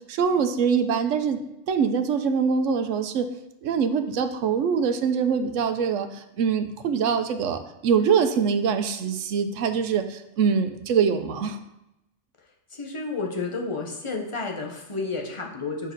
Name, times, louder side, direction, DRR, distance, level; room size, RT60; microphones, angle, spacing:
voice 1, 0.1-1.4 1.7-3.3 3.6-11.6, right 6 dB, 80° right, 8 dB, 1.0 m, -24 dB
voice 2, 12.7-15.9, left 3 dB, 25° left, 1 dB, 0.9 m, -31 dB
6.9 x 4.7 x 4.5 m, 0.87 s
omnidirectional pair, 1.3 m